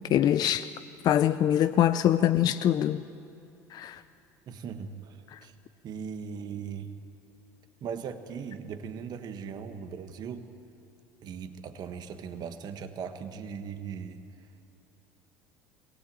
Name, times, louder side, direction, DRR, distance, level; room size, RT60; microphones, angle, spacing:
voice 1, 0.1-0.7 1.0-3.0 3.7-4.0 5.3-5.4, left 11 dB, 50° left, 12 dB, 0.5 m, -24 dB
voice 2, 4.5-5.5 5.8-6.9 7.8-10.5 11.2-14.3, right 6 dB, 55° right, 7 dB, 1.4 m, -39 dB
22.0 x 17.5 x 8.7 m, 2.6 s
supercardioid pair, 85°, 8 cm